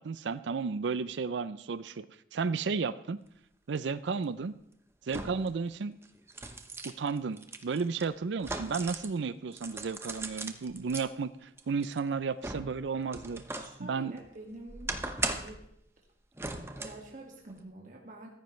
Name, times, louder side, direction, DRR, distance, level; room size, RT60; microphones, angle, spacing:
voice 1, 0.0-3.2 3.7-4.6 5.1-6.0 7.0-14.2, right 5 dB, 85° right, 14 dB, 0.5 m, -33 dB
sound 1, 3.8-3.9 5.1-5.6 6.0-9.2 9.5-11.1 11.6-13.8 14.2-15.7 16.4-17.1 17.5-17.6, right 2 dB, 15° right, 0.8 m, -39 dB
voice 2, 13.6-15.1 15.3-15.6 16.8-18.3, right 2 dB, 45° right, -1 dB, 1.9 m, -47 dB
14.5 x 14.5 x 3.2 m, 0.76 s
head